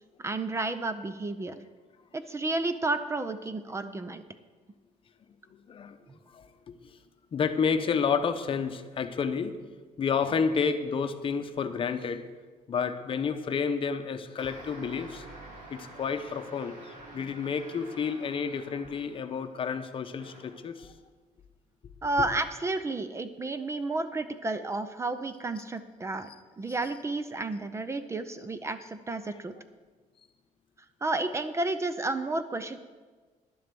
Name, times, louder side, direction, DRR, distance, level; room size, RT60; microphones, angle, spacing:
voice 1, 0.2-1.6 2.1-4.2 22.0-26.3 26.6-29.5 31.0-32.8, right 2 dB, 20° right, 11 dB, 0.6 m, -31 dB
voice 2, 6.3-7.0 7.3-9.6 10.0-12.2 12.7-15.2 15.7-20.9 26.7-26.8, left 6 dB, 40° left, 9 dB, 0.8 m, -30 dB
sound 1, 14.4-19.4 20.1-20.7, right 2 dB, 65° right, 3.3 m, -48 dB
11.0 x 7.7 x 6.9 m, 1.4 s
cardioid pair, 120°, 14 cm